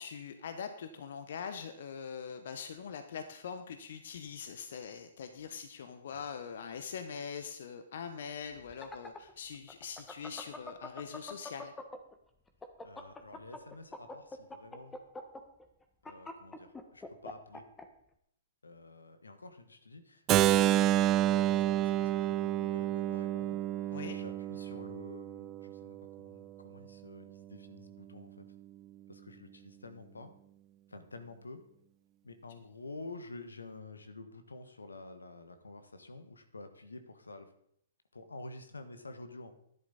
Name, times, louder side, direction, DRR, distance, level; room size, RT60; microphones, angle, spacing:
voice 1, 0.0-11.7 23.9-24.2, left 6 dB, 60° left, 8 dB, 1.0 m, -43 dB
sound 1, 8.6-12.1 12.5-17.8, left 2 dB, 10° left, 1.4 m, -44 dB
voice 2, 12.8-15.0 16.0-17.6 18.6-23.6 24.1-28.4 29.1-30.3 30.9-31.6 32.2-37.5 38.1-39.5, left 2 dB, 85° left, 8 dB, 1.4 m, -49 dB
Keyboard (musical), 20.3-26.1, right 13 dB, 30° right, 0.4 m, -29 dB
12.5 x 11.0 x 4.2 m, 0.70 s
figure-of-eight pair, 120°, 0 cm